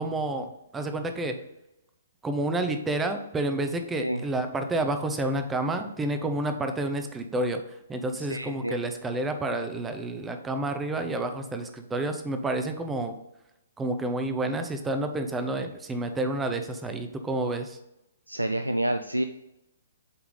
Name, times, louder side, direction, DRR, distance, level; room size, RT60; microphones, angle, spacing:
voice 1, 0.0-1.4 2.2-13.2 13.8-17.8, right 2 dB, 10° right, 6 dB, 0.7 m, -29 dB
voice 2, 8.3-8.8 18.3-19.2, right 1 dB, 90° right, 8 dB, 0.3 m, -28 dB
8.0 x 3.5 x 3.8 m, 0.88 s
figure-of-eight pair, 125°, 0 cm